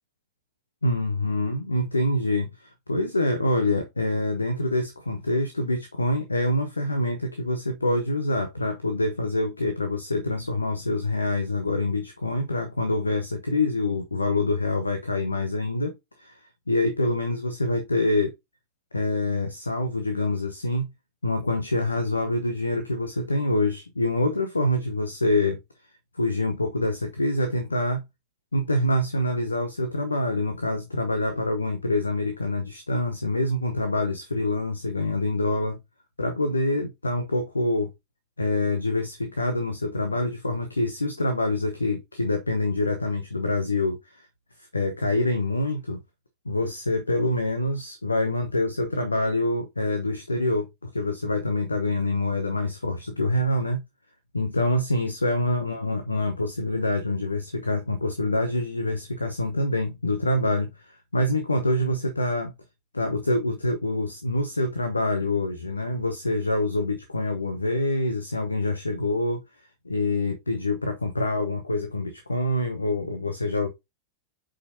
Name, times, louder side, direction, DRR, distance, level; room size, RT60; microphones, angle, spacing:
voice 1, 0.8-16.4 16.7-18.3 18.9-20.9 21.2-25.6 26.1-28.0 28.5-35.8 36.2-37.9 38.4-44.3 44.7-46.0 46.4-53.8 54.3-62.5 62.9-69.4 69.8-73.7, left 2 dB, 80° left, 0.9 m, -26 dB
8.4 x 5.2 x 2.7 m
figure-of-eight pair, 90°, 0 cm